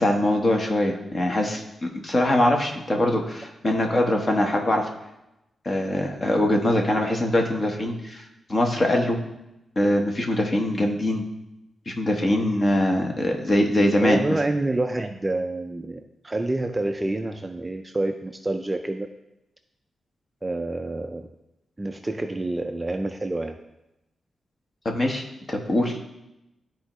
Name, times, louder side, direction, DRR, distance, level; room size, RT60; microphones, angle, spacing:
voice 1, 0.0-4.9 5.6-8.2 8.5-9.2 9.8-11.2 11.9-14.2 24.8-26.0, left 1 dB, 30° left, 2 dB, 1.1 m, -23 dB
voice 2, 14.0-19.1 20.4-21.3 21.8-23.6, right 2 dB, 15° right, 6 dB, 0.4 m, -27 dB
12.0 x 4.4 x 3.0 m, 0.90 s
wide cardioid pair, 145°, 0 cm